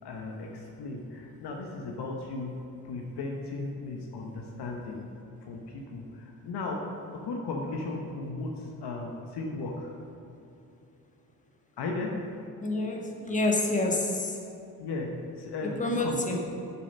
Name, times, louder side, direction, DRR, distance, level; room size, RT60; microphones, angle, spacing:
voice 1, 0.0-5.0 5.4-9.9 11.8-12.4 14.8-16.4, left 3 dB, 55° left, 1 dB, 1.2 m, -36 dB
voice 2, 12.6-14.4 15.6-16.4, left 2 dB, 15° left, 0 dB, 1.5 m, -28 dB
7.5 x 7.1 x 5.2 m, 2.7 s
figure-of-eight pair, 40°, 47 cm